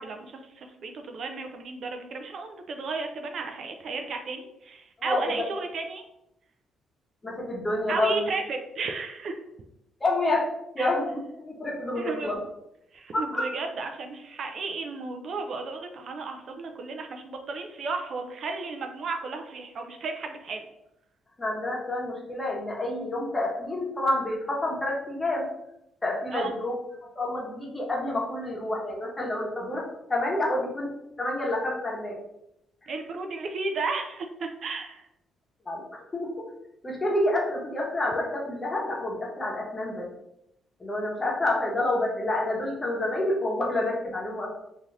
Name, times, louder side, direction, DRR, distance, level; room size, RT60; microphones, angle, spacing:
voice 1, 0.0-6.0 7.9-9.4 10.8-10.9 12.0-12.3 12.9-20.7 26.3-26.5 32.9-35.1, right 3 dB, 60° right, 4 dB, 0.4 m, -34 dB
voice 2, 5.0-5.3 7.2-8.3 10.0-10.5 10.7-11.1 11.3-12.4 13.1-13.5 21.4-25.5 26.0-26.7 27.1-29.8 30.1-30.9 31.2-32.2 32.8-32.9 35.7-36.3 36.8-40.1 40.8-44.6, left 1 dB, 25° left, -3 dB, 0.9 m, -28 dB
2.6 x 2.4 x 3.1 m, 0.85 s
cardioid pair, 90°, 0 cm